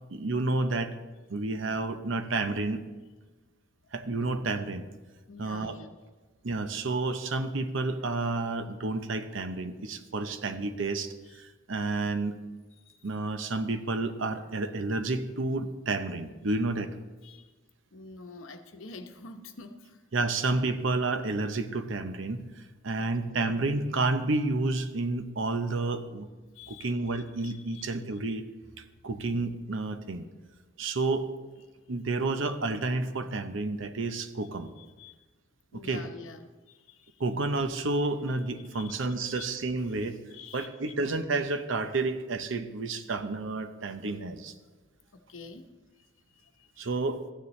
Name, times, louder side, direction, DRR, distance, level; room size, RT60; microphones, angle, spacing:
voice 1, 0.1-1.0 1.3-2.8 3.9-4.9 5.4-5.8 6.4-12.4 13.0-16.9 20.1-22.5 22.8-26.3 26.7-28.4 29.0-30.3 30.8-31.3 31.9-34.7 35.7-36.0 37.2-40.2 40.5-44.5 46.8-47.2, right 3 dB, 70° right, 9 dB, 0.7 m, -30 dB
voice 2, 5.3-6.0 12.9-13.0 17.2-17.5 17.9-20.0 22.9-23.5 26.5-27.9 34.8-35.2 35.7-37.2 38.7-38.9 39.2-39.4 40.3-40.9 45.1-45.7 46.0-46.9, left 4 dB, 75° left, 6 dB, 0.9 m, -48 dB
15.0 x 9.7 x 3.2 m, 1.3 s
head